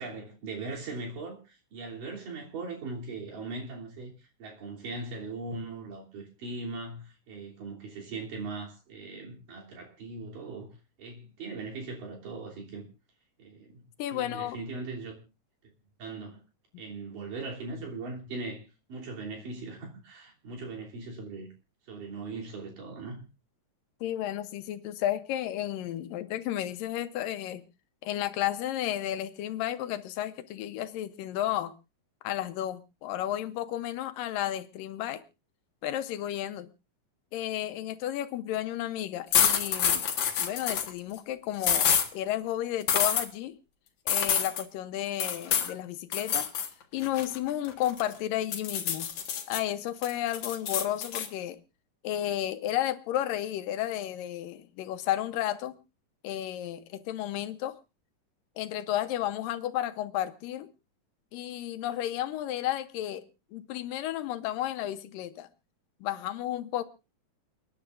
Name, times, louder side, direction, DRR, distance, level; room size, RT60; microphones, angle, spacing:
voice 1, 0.0-4.1 4.4-12.9 13.4-13.8 14.1-15.2 16.0-16.4 16.8-21.5 21.9-23.3, right 3 dB, 75° right, 4.8 m, -39 dB
voice 2, 14.0-14.6 24.0-27.6 28.0-31.7 32.2-35.2 35.8-36.7 37.3-40.1 40.4-43.5 44.1-46.5 46.9-49.1 49.5-51.6 52.0-55.7 56.2-57.7 58.6-60.7 61.3-63.2 63.5-65.5 66.0-66.8, left 12 dB, 85° left, 2.6 m, -32 dB
sound 1, 39.3-40.9 41.6-42.1 42.9-43.3 44.1-44.6 45.2-45.7 46.1-46.7 47.0-48.1 48.5-49.6 50.0-51.3, left 8 dB, 60° left, 2.1 m, -27 dB
29.5 x 10.0 x 2.5 m
omnidirectional pair, 3.8 m